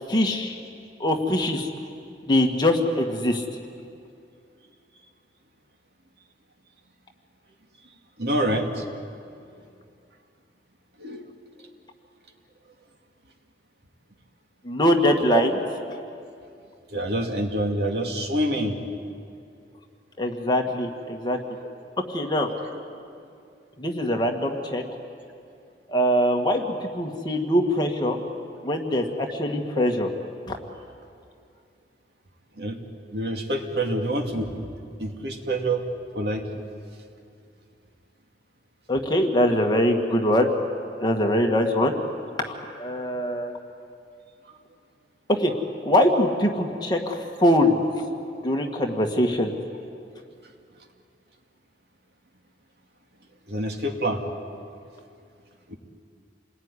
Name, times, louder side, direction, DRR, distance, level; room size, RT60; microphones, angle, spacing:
voice 1, 0.1-0.6 1.0-1.7 2.2-3.4 14.6-15.5 20.2-21.4 22.1-22.5 23.8-24.8 25.9-28.2 28.6-30.1 30.5-30.6 38.9-40.5 41.0-41.9 42.4-43.5 45.3-45.5 45.8-47.8 48.4-49.5, left 1 dB, 25° left, 2 dB, 1.9 m, -22 dB
voice 2, 8.2-8.8 11.0-11.3 15.3-15.4 16.6-18.8 32.6-32.8 33.1-34.6 35.0-35.8 36.1-36.4 53.5-54.2 55.7-55.8, right 1 dB, 65° right, 3 dB, 2.5 m, -26 dB
28.5 x 20.0 x 9.9 m, 2.4 s
head